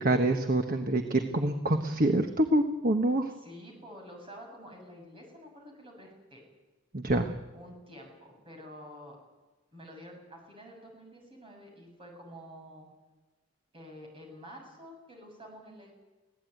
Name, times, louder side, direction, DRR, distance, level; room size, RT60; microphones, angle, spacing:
voice 1, 0.0-3.3 6.9-7.3, right 1 dB, 40° right, 6 dB, 1.2 m, -26 dB
voice 2, 3.4-6.5 7.5-9.2 9.7-12.9 13.7-15.9, equal, 25° right, 1 dB, 7.3 m, -49 dB
25.0 x 17.0 x 9.3 m, 1.2 s
head